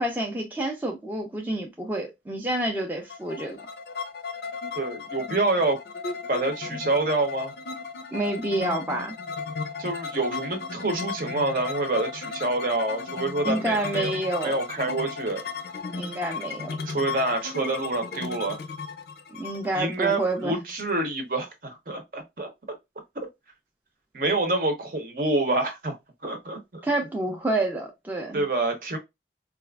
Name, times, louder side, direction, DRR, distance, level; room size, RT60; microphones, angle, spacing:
voice 1, 0.0-3.6 8.1-9.2 13.4-14.6 16.0-16.8 19.3-20.6 26.8-28.4, right 1 dB, 10° right, 0.5 m, -28 dB
sound 1, 3.1-20.8, left 4 dB, 60° left, 0.5 m, -35 dB
voice 2, 4.8-5.8 6.3-7.5 9.8-14.1 14.4-15.4 16.8-18.6 19.7-22.5 24.1-25.9 26.2-26.9 28.3-29.0, right 2 dB, 50° right, 0.8 m, -27 dB
4.1 x 2.4 x 2.3 m
head